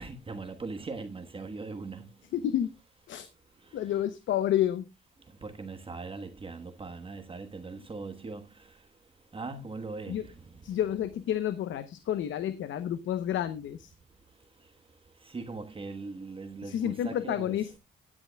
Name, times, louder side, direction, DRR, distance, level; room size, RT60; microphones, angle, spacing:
voice 1, 0.0-2.0 5.4-8.4 9.3-10.2 15.3-17.6, right 3 dB, 25° right, 1.3 m, -40 dB
voice 2, 2.3-2.7 3.1-3.3 3.7-4.9 10.1-10.3 10.6-13.9 16.6-17.8, left 11 dB, 75° left, 0.8 m, -30 dB
16.0 x 9.8 x 2.2 m
cardioid pair, 90°, 20 cm